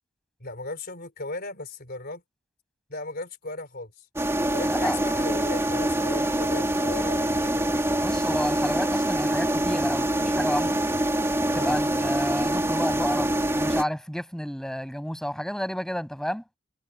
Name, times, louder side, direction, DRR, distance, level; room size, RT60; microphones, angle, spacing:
voice 1, 0.4-2.2 2.9-4.1 4.5-7.7 11.5-11.8, left 2 dB, 50° left, 3.9 m, -37 dB
sound 1, 4.2-13.8, right 1 dB, 15° right, 2.6 m, -25 dB
voice 2, 4.6-5.0 8.0-10.8 11.5-13.3 13.6-16.4, equal, 5° left, 7.8 m, -31 dB
head